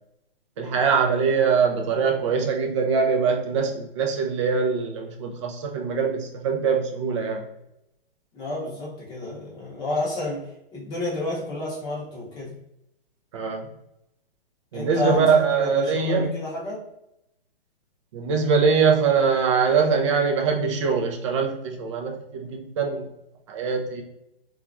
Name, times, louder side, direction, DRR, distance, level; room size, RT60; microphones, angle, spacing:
voice 1, 0.6-7.5 13.3-13.7 14.7-16.4 18.1-23.1 23.5-24.0, right 5 dB, 35° right, 2 dB, 0.4 m, -23 dB
voice 2, 8.3-10.5 10.7-12.6 14.7-16.8, left 1 dB, 15° left, -6 dB, 0.7 m, -30 dB
2.9 x 2.3 x 2.4 m, 0.83 s
hypercardioid pair, 150°, 30 cm